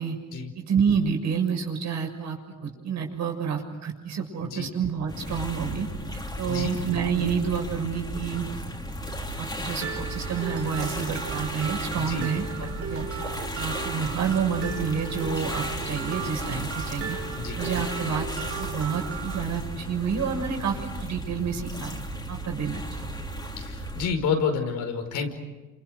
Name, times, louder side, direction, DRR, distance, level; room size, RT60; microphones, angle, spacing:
voice 1, 0.5-5.9 6.4-8.5 9.4-13.1 13.5-17.2 17.5-23.1, right 6 dB, 65° right, 2 dB, 6.6 m, -29 dB
sound 1, 5.1-24.1, equal, 15° left, 4.0 m, -35 dB
Mallet percussion, 9.8-19.4, right 7 dB, 50° right, 2.3 m, -37 dB
voice 2, 12.0-12.3 12.6-12.7 17.4-17.6 23.6-25.3, left 5 dB, 85° left, 4 dB, 5.2 m, -29 dB
29.5 x 27.5 x 6.5 m, 1.2 s
cardioid pair, 90°, 30 cm